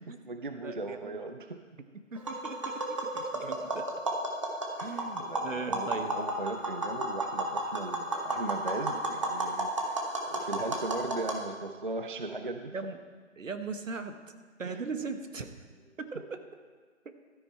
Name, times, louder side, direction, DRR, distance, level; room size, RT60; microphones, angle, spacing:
voice 1, 0.0-1.6 4.8-12.7 14.6-14.8, right 2 dB, 40° right, 7 dB, 0.4 m, -38 dB
voice 2, 0.5-1.2 1.9-3.9 4.8-6.1 12.7-13.0 13.4-14.2 14.6-15.5 16.0-16.4, right 4 dB, 70° right, 8 dB, 1.2 m, -39 dB
Tap, 2.2-11.4, right 2 dB, 25° right, 0.9 m, -33 dB
13.0 x 9.9 x 4.4 m, 1.5 s
figure-of-eight pair, 160°, 40 cm